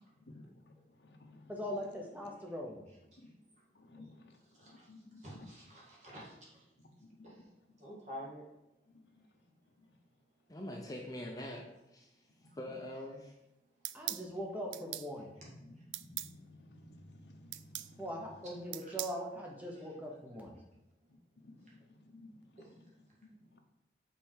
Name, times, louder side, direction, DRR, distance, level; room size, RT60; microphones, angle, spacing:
voice 1, 0.2-2.4 3.2-3.4 3.7-5.6 6.8-7.8 8.8-10.0 12.4-12.5 14.0-14.1 14.7-14.8 15.5-18.7 21.1-23.6, left 1 dB, 75° left, 4 dB, 0.8 m, -57 dB
voice 2, 1.5-2.8 13.9-15.3 18.0-20.5, equal, 10° right, -1 dB, 1.0 m, -41 dB
voice 3, 5.2-6.3 7.2-7.3 7.8-8.4 18.8-19.0 19.7-19.9 22.6-22.7, equal, 40° right, -5 dB, 2.0 m, -48 dB
voice 4, 10.5-12.3 12.6-13.3, left 1 dB, 20° left, 0 dB, 0.6 m, -44 dB
sound 1, 13.8-14.3 14.7-15.1 15.9-16.3 17.5-17.9 18.7-19.2, right 15 dB, 90° right, 0.3 m, -40 dB
5.4 x 4.4 x 4.6 m, 0.89 s
head